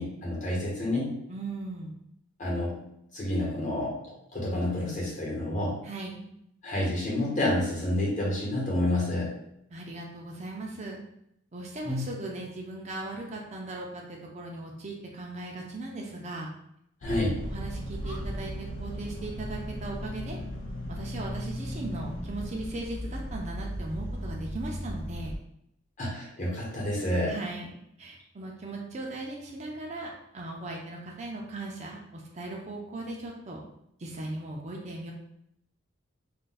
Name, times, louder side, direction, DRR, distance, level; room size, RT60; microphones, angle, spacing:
voice 1, 0.0-1.2 2.4-2.8 3.1-4.0 4.3-5.8 6.6-9.3 11.8-12.1 17.0-17.4 26.0-27.3, left 1 dB, 40° left, -4 dB, 1.1 m, -29 dB
voice 2, 1.3-1.9 5.8-6.3 9.7-11.0 11.5-16.5 17.5-20.4 20.9-25.3 27.3-27.7 28.0-33.6 34.0-35.1, right 2 dB, 35° right, -1 dB, 0.4 m, -38 dB
sound 1, 17.0-25.4, equal, 90° left, 0.6 m, -36 dB
2.5 x 2.2 x 3.9 m, 0.75 s
head